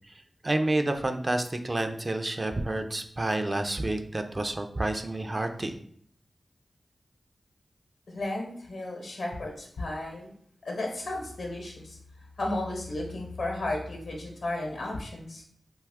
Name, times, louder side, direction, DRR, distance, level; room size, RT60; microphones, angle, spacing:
voice 1, 0.4-5.7, right 2 dB, 35° right, 6 dB, 0.3 m, -29 dB
voice 2, 8.1-10.3 10.6-12.0 12.4-15.4, left 2 dB, 75° left, 1 dB, 0.8 m, -34 dB
2.6 x 2.3 x 3.4 m, 0.63 s
cardioid pair, 50°, 0 cm